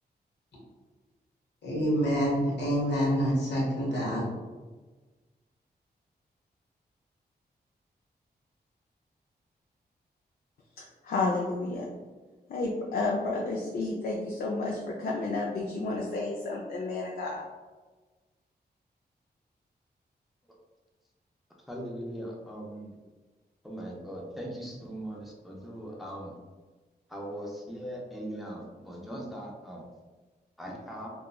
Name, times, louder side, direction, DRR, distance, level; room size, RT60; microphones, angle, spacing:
voice 1, 1.6-4.3, equal, 85° left, -5 dB, 1.0 m, -27 dB
voice 2, 10.8-11.9 12.5-17.5, left 3 dB, 65° left, -3 dB, 0.4 m, -31 dB
voice 3, 21.7-22.9 23.6-26.3 27.1-29.8 30.6-31.1, equal, ahead, -2 dB, 0.4 m, -39 dB
2.9 x 2.2 x 2.3 m, 1.3 s
wide cardioid pair, 120°, 17 cm